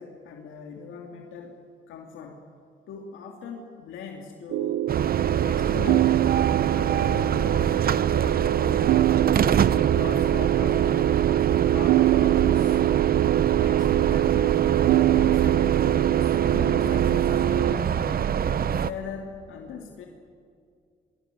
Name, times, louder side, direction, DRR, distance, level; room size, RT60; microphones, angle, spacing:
voice 1, 0.0-1.6 1.9-2.4 2.9-4.9 5.4-6.2 6.7-7.9 8.2-9.7 9.9-11.3 11.7-12.8 13.5-18.3 18.8-20.1, left 6 dB, 85° left, 2 dB, 2.6 m, -40 dB
sound 1, 4.5-17.8, right 14 dB, 85° right, 0.5 m, -23 dB
sound 2, 4.9-18.9, right 8 dB, 50° right, 0.9 m, -25 dB
22.5 x 22.0 x 9.2 m, 2.2 s
cardioid pair, 90°, 20 cm